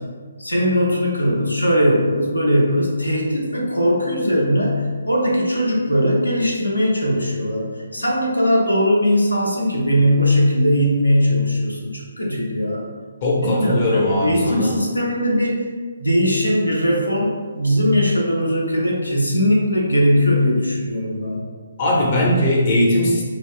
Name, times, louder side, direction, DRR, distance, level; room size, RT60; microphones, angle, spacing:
voice 1, 0.4-12.8 13.4-15.6 16.0-21.5, equal, 85° left, -2 dB, 0.6 m, -19 dB
voice 2, 13.2-14.7 21.8-23.2, left 1 dB, 40° left, -3 dB, 0.6 m, -19 dB
2.3 x 2.0 x 3.5 m, 1.5 s
figure-of-eight pair, 140°, 0 cm